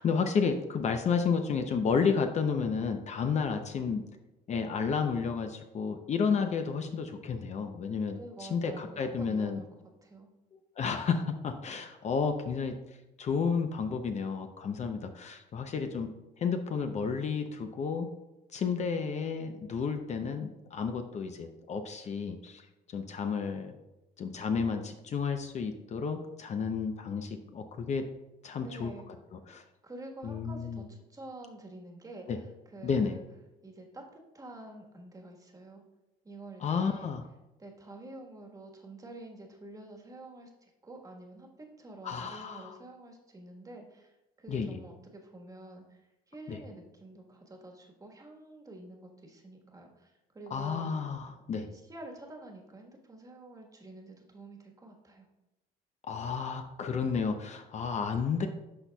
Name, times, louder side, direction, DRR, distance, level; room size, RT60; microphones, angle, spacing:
voice 1, 0.0-4.0 4.5-9.6 10.5-12.8 13.2-16.1 16.4-18.1 18.5-22.7 22.9-23.7 24.2-28.0 28.4-28.9 29.3-29.6 30.2-30.9 32.3-32.4 32.8-33.1 36.6-37.2 42.0-42.8 44.5-44.8 46.5-46.6 50.5-51.7 56.0-58.5, left 5 dB, 45° left, 6 dB, 0.6 m, -31 dB
voice 2, 8.1-9.7 10.0-10.3 28.6-29.1 29.8-32.4 32.7-33.2 33.6-35.8 36.2-37.1 37.6-46.0 46.3-50.9 51.6-55.3, right 2 dB, 20° right, 1 dB, 1.3 m, -48 dB
12.0 x 4.1 x 2.3 m, 0.97 s
cardioid pair, 110°, 17 cm